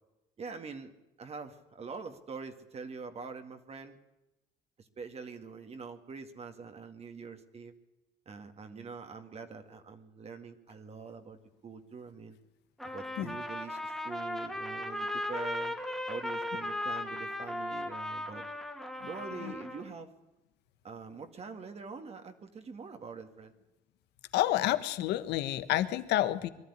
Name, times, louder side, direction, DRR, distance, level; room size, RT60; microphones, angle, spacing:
voice 1, 0.4-0.9 1.2-4.0 4.8-7.7 8.3-12.4 12.8-15.8 16.1-18.5 19.1-20.1 20.8-23.5, right 5 dB, 40° right, 6 dB, 2.1 m, -44 dB
Trumpet, 12.8-19.9, left 1 dB, ahead, 2.3 m, -37 dB
voice 2, 24.3-26.5, left 14 dB, 80° left, 12 dB, 1.4 m, -29 dB
22.5 x 12.5 x 9.9 m, 0.98 s
cardioid pair, 110°, 17 cm